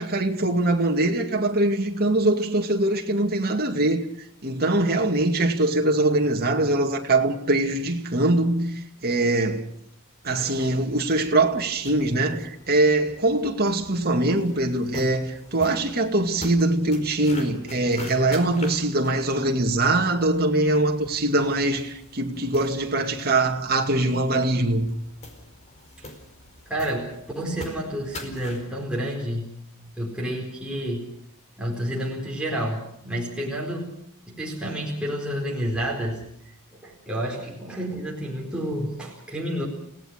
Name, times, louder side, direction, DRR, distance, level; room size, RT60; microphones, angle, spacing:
voice 1, 0.0-9.7 10.2-24.9, right 2 dB, 45° right, 2.3 m, -23 dB
sound 1, 10.2-28.7, left 1 dB, 30° left, 4.8 m, -44 dB
voice 2, 26.7-29.5 30.0-31.1 31.6-34.0 34.3-36.2 36.7-39.7, equal, 5° right, 4.4 m, -30 dB
29.5 x 18.0 x 6.5 m
head